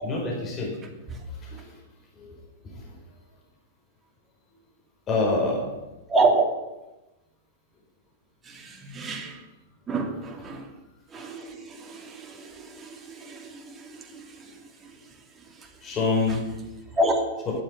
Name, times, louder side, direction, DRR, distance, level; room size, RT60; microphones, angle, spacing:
voice 1, 0.0-0.8 1.2-1.8 2.1-3.1 5.1-5.6 15.8-16.4, left 3 dB, 30° left, -1 dB, 5.1 m, -27 dB
voice 2, 6.1-6.5 8.4-9.5 9.9-10.8 11.1-16.0 16.9-17.2, right 2 dB, 20° right, 2 dB, 2.9 m, -29 dB
11.0 x 8.8 x 9.7 m, 1.0 s
hypercardioid pair, 110°, 0 cm